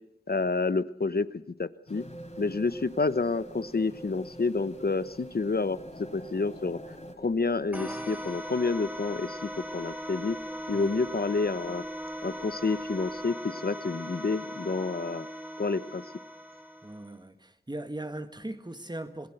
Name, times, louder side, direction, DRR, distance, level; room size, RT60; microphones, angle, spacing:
voice 1, 0.3-2.0 2.4-5.8 6.1-6.8 7.2-10.4 10.7-11.8 12.2-15.3 15.6-16.0, left 3 dB, 65° left, 0.9 m, -29 dB
sound 1, 1.9-7.2, left 1 dB, 45° left, 3.6 m, -48 dB
sound 2, 1.9-13.3, right 3 dB, 15° left, 3.7 m, -48 dB
sound 3, 7.7-17.2, equal, 10° right, 2.6 m, -39 dB
voice 2, 16.8-19.3, right 1 dB, 25° right, 1.7 m, -39 dB
26.5 x 19.0 x 7.8 m
wide cardioid pair, 50°, 17 cm